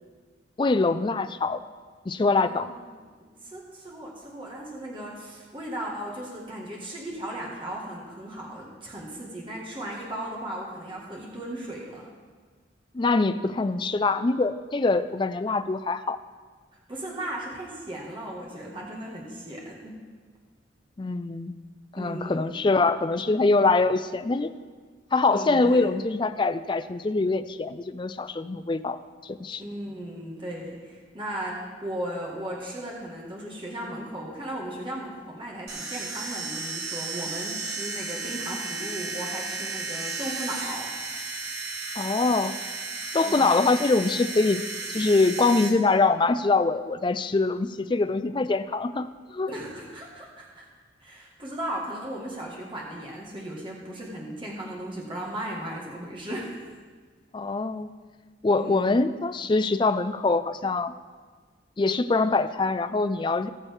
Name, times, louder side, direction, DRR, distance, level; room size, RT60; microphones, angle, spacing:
voice 1, 0.6-1.6 2.1-2.7 12.9-16.2 21.0-21.6 21.9-24.5 25.1-29.0 29.2-29.6 42.0-42.5 43.1-44.6 44.9-49.5 57.3-57.9 58.4-60.9 61.8-63.5, left 3 dB, 25° left, 11 dB, 0.4 m, -24 dB
voice 2, 2.4-2.8 3.1-12.1 16.9-19.9 22.0-22.5 25.3-25.9 29.6-41.1 43.2-43.6 49.5-50.7 51.0-56.8 58.6-58.9, right 1 dB, 25° right, -4 dB, 1.8 m, -36 dB
sound 1, 35.7-45.7, right 3 dB, 55° right, 1.6 m, -34 dB
19.0 x 7.0 x 3.6 m, 1.5 s
head